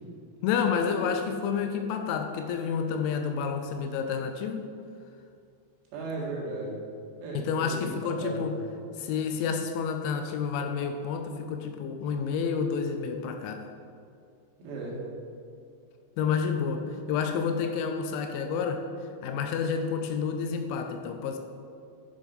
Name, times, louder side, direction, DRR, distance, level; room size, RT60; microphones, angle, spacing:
voice 1, 0.4-4.7 7.3-8.6 9.0-13.7 16.2-18.8 19.2-21.4, left 6 dB, 80° left, 6 dB, 2.8 m, -29 dB
voice 2, 5.9-6.8 7.2-8.5 14.6-15.1, right 2 dB, 65° right, -4 dB, 3.8 m, -36 dB
10.5 x 5.9 x 5.3 m, 2.4 s
omnidirectional pair, 5.8 m